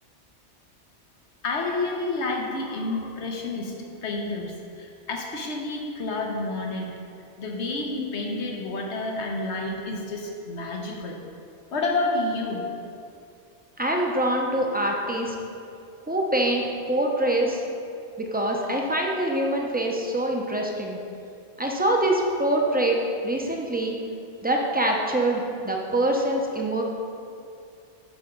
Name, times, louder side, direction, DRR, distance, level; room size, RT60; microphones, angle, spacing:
voice 1, 1.4-3.8 4.0-6.9 7.4-11.2 11.7-12.6, left 2 dB, 75° left, 1 dB, 1.3 m, -29 dB
voice 2, 13.8-15.3 16.1-17.6 18.2-21.0 21.6-23.0 23.2-24.0 24.4-26.8, right 1 dB, 10° right, 0 dB, 0.7 m, -24 dB
6.8 x 5.8 x 5.2 m, 2.5 s
omnidirectional pair, 1.2 m